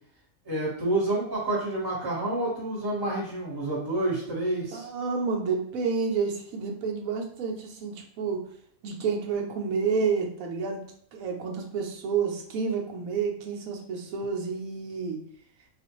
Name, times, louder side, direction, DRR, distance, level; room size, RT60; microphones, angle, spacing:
voice 1, 0.4-4.9, right 2 dB, 15° right, -5 dB, 1.1 m, -28 dB
voice 2, 4.7-8.5 8.8-10.8 11.1-15.2, right 5 dB, 75° right, 1 dB, 1.1 m, -29 dB
3.9 x 2.5 x 3.0 m, 0.64 s
omnidirectional pair, 1.5 m